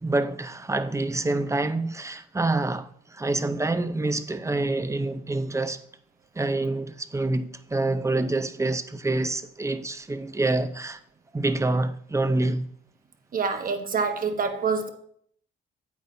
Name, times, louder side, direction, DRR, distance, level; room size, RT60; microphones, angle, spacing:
voice 1, 0.0-5.8 6.4-11.0 11.3-12.7, right 2 dB, 15° right, 0.6 m, -27 dB
voice 2, 13.3-14.9, right 5 dB, 45° right, 1.2 m, -26 dB
9.5 x 8.1 x 2.7 m
cardioid pair, 90°, 20 cm